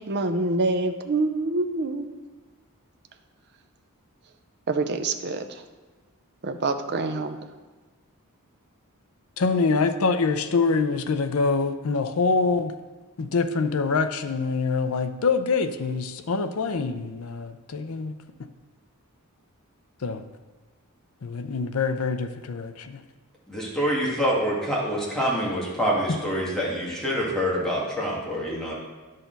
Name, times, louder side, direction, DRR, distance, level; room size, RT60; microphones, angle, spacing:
voice 1, 0.0-2.1 4.7-5.6 6.4-7.4, right 3 dB, 50° right, 7 dB, 0.6 m, -26 dB
voice 2, 9.4-12.7 13.2-18.2 20.0-20.2 21.2-23.0 26.1-26.2, left 4 dB, 65° left, 9 dB, 0.6 m, -25 dB
voice 3, 23.5-28.7, equal, 5° left, -6 dB, 2.0 m, -26 dB
10.0 x 6.6 x 4.0 m, 1.3 s
head